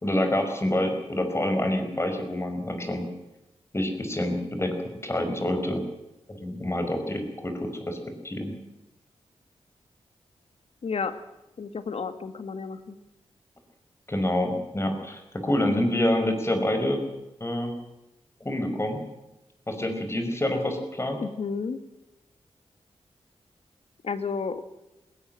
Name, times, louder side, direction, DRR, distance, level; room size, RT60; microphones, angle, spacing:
voice 1, 0.0-3.1 3.7-5.8 6.3-8.5 14.1-17.0 17.4-17.7 18.4-19.0 19.7-21.2, left 1 dB, 25° left, 6 dB, 5.4 m, -27 dB
voice 2, 10.8-11.2 11.6-13.0 21.2-21.8 24.0-24.6, left 5 dB, 65° left, 11 dB, 2.0 m, -31 dB
20.5 x 17.5 x 7.7 m, 0.96 s
cardioid pair, 70°, 11 cm